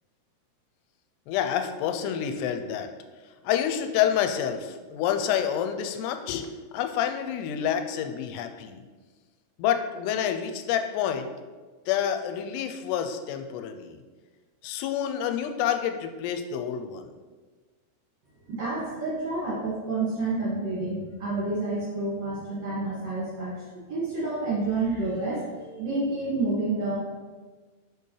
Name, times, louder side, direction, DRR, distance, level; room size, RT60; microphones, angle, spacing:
voice 1, 1.3-2.9 3.4-8.8 9.6-11.3 11.9-14.0 14.6-17.1, left 9 dB, 90° left, 7 dB, 2.7 m, -28 dB
voice 2, 18.5-23.5 23.9-27.0, right 3 dB, 55° right, -8 dB, 2.3 m, -29 dB
6.8 x 5.2 x 3.2 m, 1.4 s
omnidirectional pair, 4.7 m